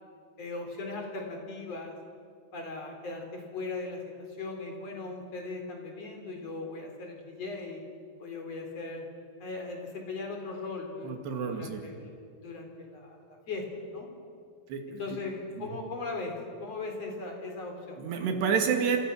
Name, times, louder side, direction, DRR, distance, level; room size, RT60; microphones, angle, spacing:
voice 1, 0.4-2.0 2.5-7.8 8.2-9.1 9.4-13.6 13.9-14.1 15.0-18.0, left 3 dB, 35° left, 2 dB, 4.4 m, -38 dB
voice 2, 11.0-11.8 14.7-15.2 18.0-19.0, right 6 dB, 70° right, 4 dB, 4.2 m, -29 dB
28.0 x 27.5 x 6.4 m, 2.3 s
omnidirectional pair, 5.1 m